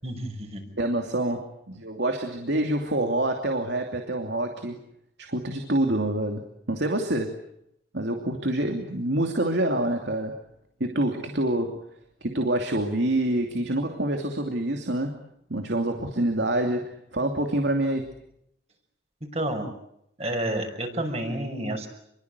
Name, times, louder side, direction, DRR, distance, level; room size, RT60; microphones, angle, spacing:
voice 1, 0.0-0.6 19.3-19.7 20.2-21.9, right 1 dB, 35° right, 5 dB, 6.0 m, -30 dB
voice 2, 0.8-4.8 5.2-7.4 7.9-10.4 10.8-11.8 12.2-15.2 15.5-18.1, right 1 dB, 75° right, 4 dB, 2.8 m, -26 dB
29.5 x 23.0 x 8.3 m, 0.78 s
head